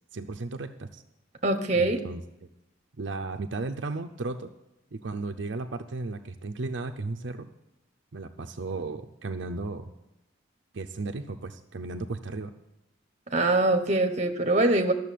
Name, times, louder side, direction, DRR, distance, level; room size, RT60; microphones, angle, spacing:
voice 1, 0.1-1.0 1.7-2.2 3.0-4.5 4.9-7.5 8.1-9.9 10.7-12.5, right 3 dB, 70° right, 5 dB, 0.6 m, -35 dB
voice 2, 1.4-2.0 13.3-14.9, right 2 dB, 35° right, 6 dB, 1.0 m, -23 dB
12.5 x 6.8 x 8.4 m, 0.92 s
head